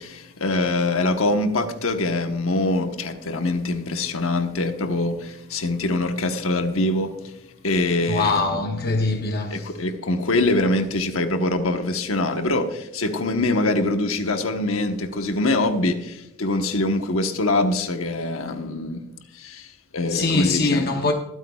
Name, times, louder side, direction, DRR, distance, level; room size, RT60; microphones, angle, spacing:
voice 1, 0.0-7.3 7.6-8.5 9.5-19.0 19.3-20.9, left 2 dB, 70° left, 1.1 m, -24 dB
voice 2, 8.1-9.7 20.1-21.1, left 3 dB, 45° left, 0.7 m, -23 dB
21.5 x 8.5 x 2.3 m
head